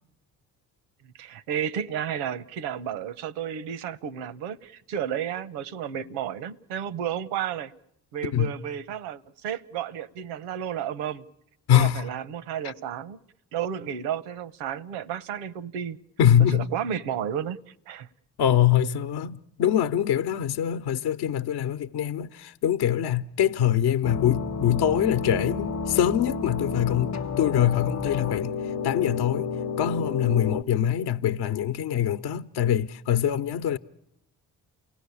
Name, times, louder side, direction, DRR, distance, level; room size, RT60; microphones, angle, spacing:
voice 1, 1.2-7.7 8.1-11.2 11.7-13.2 13.5-16.0 16.5-17.6 17.9-18.1, right 9 dB, 85° right, 0.9 m, -32 dB
voice 2, 11.7-12.0 12.6-12.7 16.2-16.7 18.4-28.5 28.8-29.5 29.8-33.8, left 10 dB, 60° left, 0.9 m, -24 dB
sound 1, 24.0-30.6, left 5 dB, 40° left, 0.9 m, -31 dB
28.5 x 17.5 x 8.4 m
hypercardioid pair, 50°, 43 cm